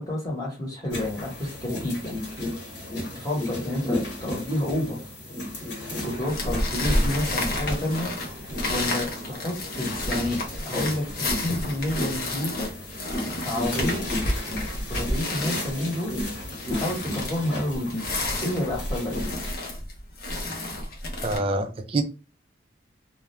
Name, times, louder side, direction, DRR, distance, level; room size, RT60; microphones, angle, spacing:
voice 1, 0.0-2.2 3.1-5.1 6.0-8.1 8.7-12.7 13.4-14.1 14.9-16.1 16.7-18.0 18.4-19.1, left 1 dB, 20° left, -3 dB, 1.0 m, -29 dB
sound 1, 0.9-19.5, left 1 dB, 65° left, 1.1 m, -34 dB
sound 2, 6.3-21.4, left 1 dB, 50° left, 0.6 m, -30 dB
voice 2, 21.2-22.0, right 2 dB, 30° right, 7 dB, 0.3 m, -25 dB
2.3 x 2.1 x 3.0 m, 0.32 s
head